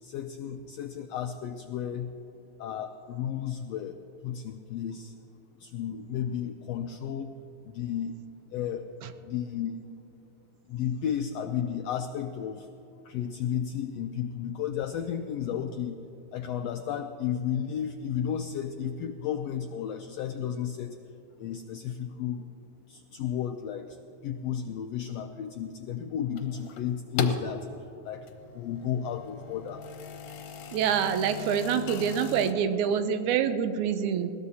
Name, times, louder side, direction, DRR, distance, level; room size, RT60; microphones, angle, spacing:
voice 1, 0.0-2.1 2.6-5.2 5.6-7.4 7.6-8.2 8.5-8.9 9.2-9.8 10.7-12.7 13.0-16.0 16.3-21.0 21.4-22.4 22.9-24.0 24.2-28.3 28.5-29.8, left 9 dB, 90° left, 6 dB, 1.4 m, -33 dB
sound 1, 26.3-27.5 28.1-32.5, left 5 dB, 65° left, 1.7 m, -37 dB
voice 2, 30.7-34.3, right 8 dB, 80° right, 10 dB, 2.1 m, -26 dB
20.5 x 17.5 x 2.8 m, 2.9 s
omnidirectional pair, 3.5 m